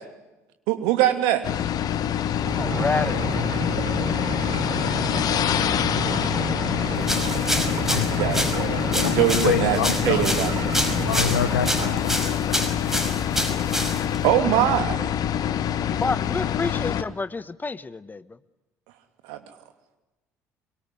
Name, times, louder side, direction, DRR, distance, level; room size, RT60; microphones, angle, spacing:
voice 1, 0.7-1.6 6.8-7.1 7.9-9.8 10.1-10.7 14.2-15.1 19.2-19.4, right 13 dB, 70° right, 7 dB, 2.9 m, -23 dB
sound 1, 1.4-17.0, left 10 dB, 50° left, 1.4 m, -26 dB
sound 2, 2.4-11.9, right 3 dB, 50° right, 5.8 m, -30 dB
voice 2, 2.6-3.4 15.9-18.4, left 3 dB, 20° left, 16 dB, 1.3 m, -29 dB
sound 3, 7.0-14.3, equal, 5° right, 5.5 m, -28 dB
voice 3, 7.8-10.3 11.0-13.0, left 9 dB, 80° left, 16 dB, 1.0 m, -28 dB
24.5 x 23.5 x 9.9 m, 1.1 s
figure-of-eight pair, 55°, 8 cm